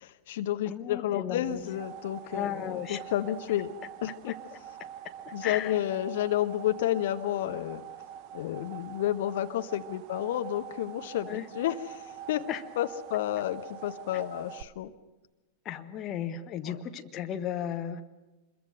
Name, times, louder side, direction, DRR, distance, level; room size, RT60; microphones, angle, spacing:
voice 1, 0.0-3.7 4.0-4.3 5.3-7.8 8.3-12.0 12.3-12.5 12.8-14.9 16.7-16.8, left 12 dB, 55° left, 9 dB, 1.0 m, -31 dB
voice 2, 0.7-1.6 2.2-3.0 4.3-4.4 5.2-5.7 11.3-11.5 12.5-12.6 14.1-14.2 15.6-18.0, left 10 dB, 30° left, 7 dB, 1.3 m, -35 dB
sound 1, 1.4-14.6, right 10 dB, 40° right, 0.8 m, -45 dB
26.0 x 22.0 x 6.7 m, 1.1 s
figure-of-eight pair, 90°, 0 cm